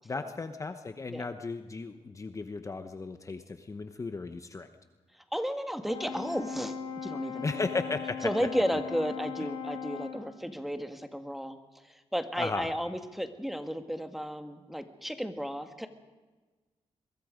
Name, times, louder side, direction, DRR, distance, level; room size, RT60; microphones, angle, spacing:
voice 1, 0.0-4.7 7.4-8.3 12.4-12.7, left 3 dB, 30° left, 8 dB, 1.0 m, -35 dB
voice 2, 5.3-6.7 7.0-7.6 8.2-11.6 12.1-15.9, equal, ahead, 7 dB, 1.7 m, -33 dB
Brass instrument, 5.9-10.3, left 7 dB, 75° left, 5.3 m, -38 dB
23.0 x 22.0 x 5.2 m, 1.3 s
cardioid pair, 95°, 11 cm